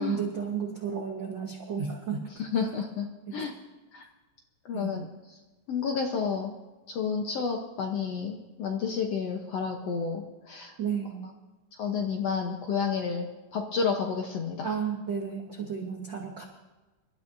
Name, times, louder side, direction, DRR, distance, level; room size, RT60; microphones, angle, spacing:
voice 1, 0.0-2.3 3.3-3.5 4.7-5.1 10.8-11.3 14.6-16.4, right 7 dB, 70° right, 1 dB, 1.1 m, -33 dB
voice 2, 2.4-3.1 3.3-3.5 3.9-4.1 4.6-5.4 5.7-6.5 6.9-10.7 11.8-14.7, left 5 dB, 65° left, 2 dB, 1.6 m, -30 dB
26.5 x 12.5 x 2.7 m, 1.2 s
omnidirectional pair, 3.9 m